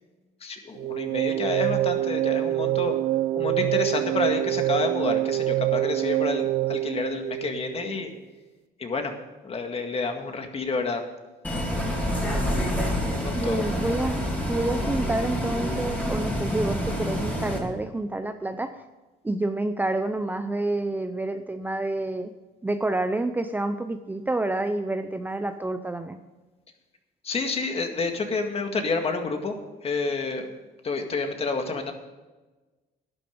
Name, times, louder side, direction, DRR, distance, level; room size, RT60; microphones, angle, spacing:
voice 1, 0.4-3.0 3.4-8.1 8.8-9.2 9.4-11.0 13.2-13.6 27.2-29.6 29.8-30.5 30.8-31.9, left 4 dB, 35° left, 5 dB, 2.0 m, -29 dB
sound 1, 0.8-8.0, right 15 dB, 75° right, 0.5 m, -26 dB
Bus, 11.4-17.6, equal, 10° left, 3.3 m, -27 dB
voice 2, 13.3-14.2 14.5-18.8 19.2-22.3 22.6-26.2, right 2 dB, 10° right, 8 dB, 0.6 m, -28 dB
12.0 x 10.5 x 5.3 m, 1.2 s
cardioid pair, 110°, 17 cm